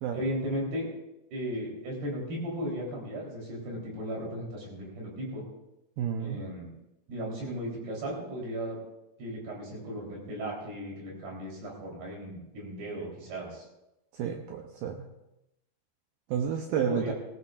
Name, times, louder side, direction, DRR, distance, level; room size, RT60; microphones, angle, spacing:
voice 1, 0.1-0.9 1.3-5.5 6.2-6.7 7.1-8.8 9.2-13.7 16.9-17.1, equal, 60° right, -2 dB, 5.5 m, -36 dB
voice 2, 6.0-6.4 14.1-15.1 16.3-17.1, right 8 dB, 80° right, 3 dB, 2.2 m, -31 dB
19.0 x 15.5 x 2.5 m, 0.89 s
omnidirectional pair, 5.2 m